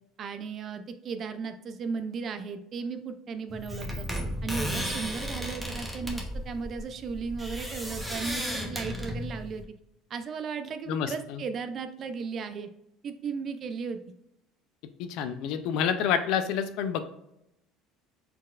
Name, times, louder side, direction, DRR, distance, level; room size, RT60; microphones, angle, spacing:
voice 1, 0.2-4.1 4.4-8.4 8.7-9.6 10.1-12.7 13.0-14.0, right 5 dB, 35° right, 9 dB, 0.3 m, -35 dB
sound 1, 3.5-9.6, equal, 5° right, 0.8 m, -34 dB
voice 2, 10.9-11.4 15.0-17.0, left 8 dB, 70° left, 9 dB, 0.4 m, -28 dB
4.3 x 4.0 x 2.4 m, 0.82 s
cardioid pair, 140°, 0 cm